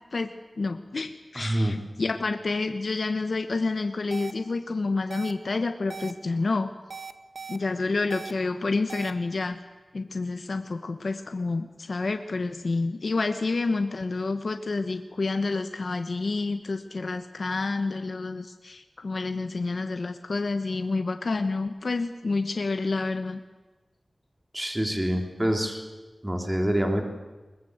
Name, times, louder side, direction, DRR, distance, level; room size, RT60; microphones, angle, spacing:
voice 1, 0.1-6.7 7.5-9.6 9.9-23.4, left 3 dB, 70° left, 7 dB, 1.1 m, -29 dB
voice 2, 1.3-1.8 24.5-25.8 26.2-27.0, equal, 15° right, 3 dB, 3.2 m, -26 dB
sound 1, 4.1-4.3 5.1-5.3 5.9-6.1 6.9-7.6 8.1-8.3 8.9-9.1, right 5 dB, 85° right, 1.3 m, -38 dB
21.5 x 20.5 x 8.0 m, 1.2 s
wide cardioid pair, 85°, 0 cm